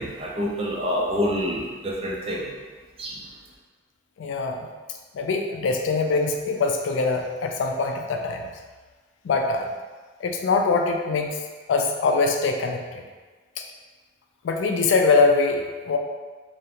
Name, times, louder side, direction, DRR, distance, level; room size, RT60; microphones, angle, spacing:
voice 1, 0.0-2.5 3.0-3.2, equal, 30° right, -4 dB, 0.4 m, -27 dB
voice 2, 4.2-4.7 5.1-8.4 9.2-9.7 10.2-11.4 11.7-13.0 13.6-13.7 14.4-16.0, left 4 dB, 70° left, 3 dB, 0.3 m, -23 dB
2.4 x 2.0 x 2.8 m, 1.4 s
head